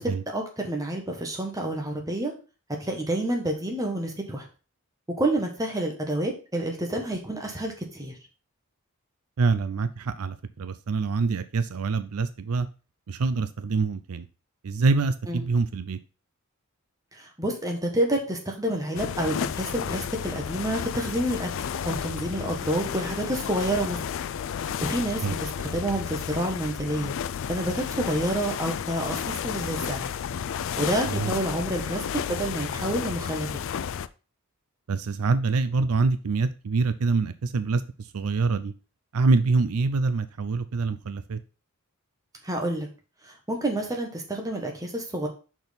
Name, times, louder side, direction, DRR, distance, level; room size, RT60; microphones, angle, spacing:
voice 1, 0.0-2.3 2.8-4.4 5.2-8.1 15.3-15.4 17.2-24.0 24.8-27.1 27.5-30.1 30.8-33.6 42.4-42.9 43.3-45.3, right 1 dB, 15° right, 1 dB, 1.5 m, -29 dB
voice 2, 9.4-12.7 13.1-14.3 14.6-16.0 25.2-25.3 31.1-31.3 34.9-37.8 38.1-38.7 39.1-41.4, right 4 dB, 80° right, 12 dB, 0.5 m, -25 dB
sound 1, 18.9-34.1, left 8 dB, 60° left, 0.4 m, -32 dB
6.1 x 4.5 x 5.2 m, 0.35 s
head